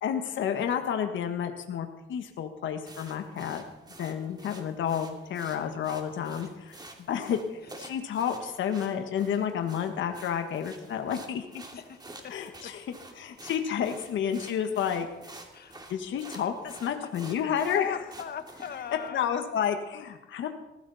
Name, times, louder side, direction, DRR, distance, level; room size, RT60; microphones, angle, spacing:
voice 1, 0.0-3.6 4.0-6.8 7.1-11.6 12.3-12.8 13.2-15.1 15.9-18.0 19.1-20.5, left 8 dB, 70° left, 6 dB, 1.6 m, -30 dB
sound 1, 2.9-19.1, right 2 dB, 20° right, 2.5 m, -49 dB
voice 2, 11.7-12.3 15.5-15.8 17.3-19.2, left 9 dB, 55° left, 10 dB, 1.5 m, -39 dB
19.5 x 15.5 x 4.2 m, 0.96 s
cardioid pair, 90°, 20 cm